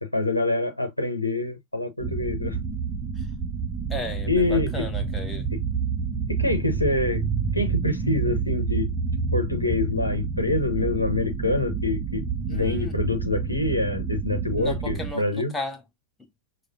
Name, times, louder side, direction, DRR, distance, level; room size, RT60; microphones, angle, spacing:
voice 1, 0.0-2.6 4.3-4.9 6.3-7.2 7.5-8.9 9.3-15.5, left 2 dB, 85° left, 0.9 m, -26 dB
sound 1, 2.0-15.1, right 5 dB, 20° right, 0.7 m, -28 dB
voice 2, 3.9-5.5 12.5-12.9 14.6-15.8 16.2-16.3, left 1 dB, 10° left, 1.0 m, -35 dB
6.4 x 2.2 x 2.4 m
figure-of-eight pair, 90°, 0 cm